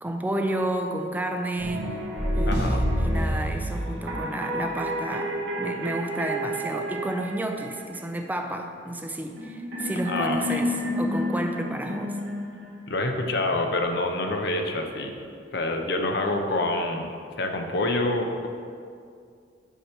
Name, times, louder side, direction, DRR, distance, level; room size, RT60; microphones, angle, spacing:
voice 1, 0.0-1.9 2.3-12.2, right 1 dB, 10° right, 4 dB, 0.4 m, -31 dB
sound 1, 1.6-8.0 9.4-13.0, equal, 85° right, 1.3 m, -29 dB
voice 2, 2.5-2.8 10.0-10.6 12.9-15.1 15.5-18.5, left 2 dB, 65° left, 4 dB, 0.6 m, -27 dB
8.0 x 2.9 x 5.7 m, 2.3 s
head